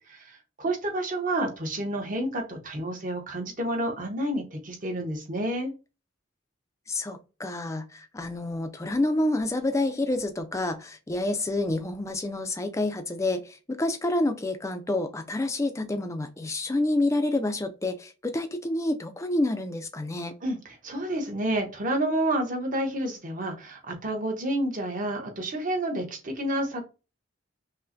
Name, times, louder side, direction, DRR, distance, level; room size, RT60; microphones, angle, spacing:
voice 1, 0.1-5.7 20.4-26.8, right 1 dB, 45° right, 0.9 m, -29 dB
voice 2, 6.9-20.3, left 2 dB, 15° left, 0.4 m, -28 dB
5.4 x 2.1 x 2.6 m
head